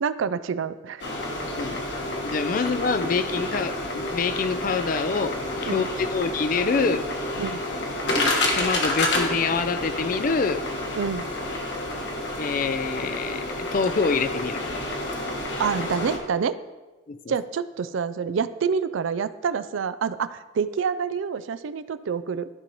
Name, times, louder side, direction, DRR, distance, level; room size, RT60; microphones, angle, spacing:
voice 1, 0.0-1.1 5.6-5.9 7.4-7.6 11.0-11.3 15.6-16.6 17.3-22.5, right 6 dB, 75° right, 14 dB, 0.4 m, -27 dB
sound 1, 1.0-16.2, left 2 dB, 55° left, 1.3 m, -29 dB
voice 2, 2.2-7.1 8.6-10.6 12.4-14.6 17.1-17.3, left 4 dB, 40° left, 11 dB, 0.4 m, -26 dB
sound 2, 2.6-4.4 5.1-6.2 6.8-7.4 7.8-7.9 8.1-8.8 9.2-9.5, equal, 20° right, 1.0 m, -39 dB
13.0 x 5.4 x 3.0 m, 1.2 s
head